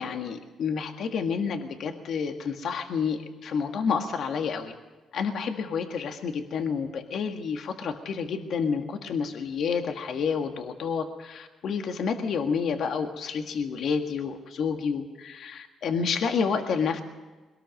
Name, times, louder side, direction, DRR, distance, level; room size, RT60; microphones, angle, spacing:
voice 1, 0.0-4.7 5.1-17.0, left 6 dB, 65° left, 5 dB, 1.7 m, -29 dB
22.5 x 18.5 x 6.5 m, 1.2 s
cardioid pair, 90°, 0 cm